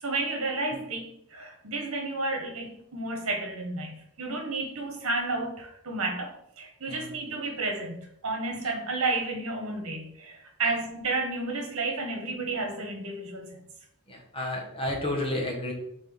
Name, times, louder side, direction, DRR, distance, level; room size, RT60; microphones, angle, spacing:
voice 1, 0.0-8.0 8.2-13.6, right 3 dB, 65° right, 3 dB, 1.4 m, -31 dB
voice 2, 14.1-15.7, left 1 dB, 25° left, -1 dB, 1.4 m, -32 dB
4.3 x 4.1 x 5.3 m, 0.73 s
head